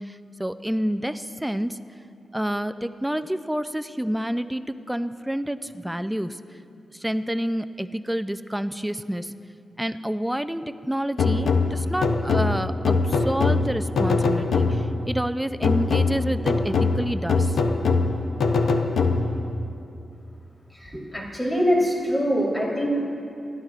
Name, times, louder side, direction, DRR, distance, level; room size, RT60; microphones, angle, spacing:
voice 1, 0.0-1.8 2.3-6.4 6.9-9.3 9.8-17.6, equal, 5° right, 10 dB, 0.5 m, -28 dB
sound 1, 11.2-15.1 15.6-19.5, left 4 dB, 85° left, 0.7 m, -22 dB
voice 2, 20.8-22.9, equal, 15° left, -3 dB, 3.5 m, -23 dB
28.0 x 12.0 x 2.5 m, 2.6 s
cardioid pair, 75°, 0 cm